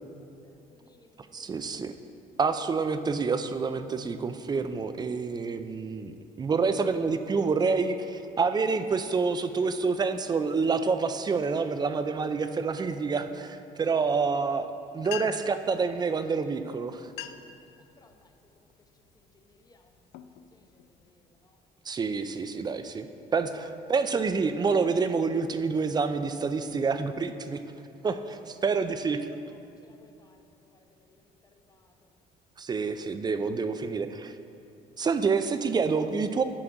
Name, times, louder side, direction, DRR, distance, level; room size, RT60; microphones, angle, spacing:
voice 1, 0.2-1.9 17.4-17.5 18.0-18.3 18.8-18.9 19.1-21.6 29.6-32.2, left 3 dB, 20° left, 6 dB, 0.7 m, -64 dB
voice 2, 1.3-1.9 2.4-14.7 14.9-17.1 21.9-23.1 23.3-27.6 28.0-29.3 32.6-34.3 35.0-36.4, right 4 dB, 25° right, 9 dB, 0.4 m, -28 dB
sound 1, 14.8-14.9 15.0-15.6 16.5-16.6 17.0-17.6 18.1-18.4 19.1-19.3 19.9-21.1, left 12 dB, 80° left, 0.4 m, -41 dB
10.0 x 3.8 x 5.9 m, 2.8 s
cardioid pair, 110°, 17 cm